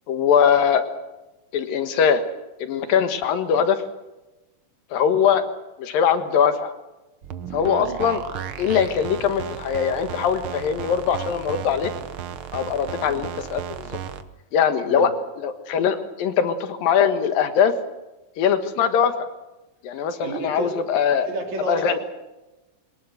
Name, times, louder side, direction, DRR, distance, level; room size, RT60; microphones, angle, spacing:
voice 1, 0.1-0.8 1.5-2.2 2.6-3.8 4.9-5.4 5.8-6.7 7.5-8.2 8.6-11.9 12.5-14.0 14.5-17.7 18.4-19.1 19.8-21.3 21.7-22.0, left 7 dB, 75° left, 9 dB, 3.2 m, -21 dB
sound 1, 7.2-14.2, right 9 dB, 80° right, 1.2 m, -34 dB
voice 2, 20.2-20.8 21.2-22.0, right 3 dB, 50° right, 3 dB, 4.4 m, -31 dB
23.5 x 20.0 x 8.0 m, 1.0 s
omnidirectional pair, 4.1 m